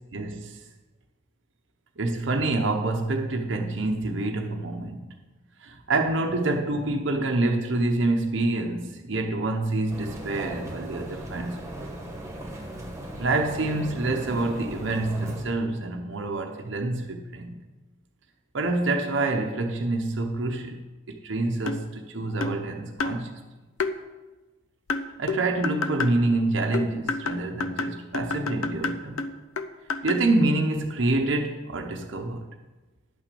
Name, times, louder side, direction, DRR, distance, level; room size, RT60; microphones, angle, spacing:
voice 1, 0.1-0.6 2.0-5.1 5.9-11.9 13.2-17.6 18.5-20.8 21.1-23.4 25.2-29.2 30.0-32.5, right 2 dB, 60° right, 0.8 m, -27 dB
sound 1, 9.9-15.4, right 1 dB, 15° right, 1.5 m, -37 dB
sound 2, 21.7-21.9 22.4-22.6 23.0-23.2 23.8-23.9 24.9-26.2 26.7-30.3, left 3 dB, 85° left, 0.6 m, -29 dB
10.5 x 6.0 x 6.8 m
head